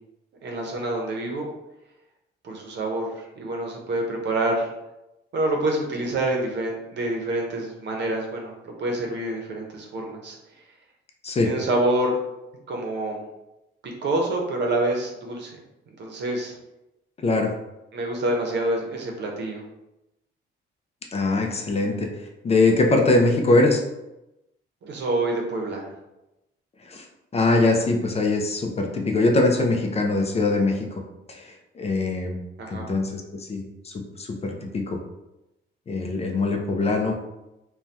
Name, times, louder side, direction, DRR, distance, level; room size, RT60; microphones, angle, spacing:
voice 1, 0.4-1.5 2.4-4.7 5.3-8.5 8.8-10.4 11.4-12.2 12.7-13.2 13.8-15.6 16.0-16.5 17.9-19.6 24.8-25.9 32.6-32.9, right 2 dB, 60° right, 1 dB, 0.8 m, -27 dB
voice 2, 21.1-22.1 22.4-23.8 26.9-27.0 27.3-30.8 31.3-32.4 32.7-35.0 35.9-37.1, left 2 dB, 30° left, 3 dB, 0.5 m, -22 dB
2.6 x 2.2 x 3.3 m, 0.94 s
cardioid pair, 90°, 20 cm